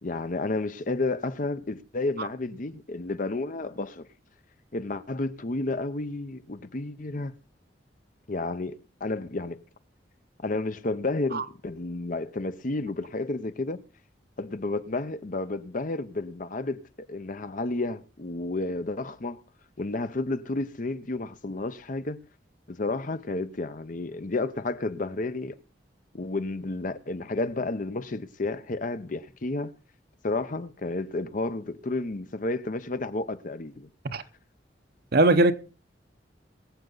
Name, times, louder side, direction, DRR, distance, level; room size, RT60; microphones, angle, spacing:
voice 1, 0.0-4.1 4.7-7.3 8.3-9.6 10.4-13.8 14.4-16.8 17.1-19.4 19.8-22.3 22.7-25.6 26.1-29.7 30.2-33.9, left 2 dB, 45° left, 0.8 m, -31 dB
voice 2, 35.1-35.5, right 2 dB, 60° right, 0.9 m, -20 dB
22.0 x 7.9 x 4.0 m
head